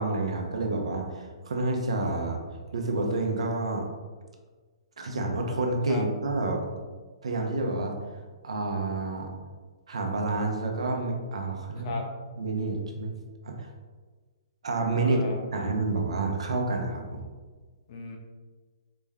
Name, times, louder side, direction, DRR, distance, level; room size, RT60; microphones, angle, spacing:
voice 1, 0.0-2.4 2.7-3.9 5.0-6.6 7.2-7.9 8.4-9.3 9.9-12.0 12.4-13.2 13.4-13.7 14.6-15.2 15.5-17.2, right 2 dB, 85° right, 2 dB, 0.7 m, -29 dB
voice 2, 15.0-15.7 17.9-18.2, left 3 dB, 45° left, 1 dB, 0.6 m, -37 dB
4.2 x 2.2 x 3.5 m, 1.4 s
hypercardioid pair, 150°, 3 cm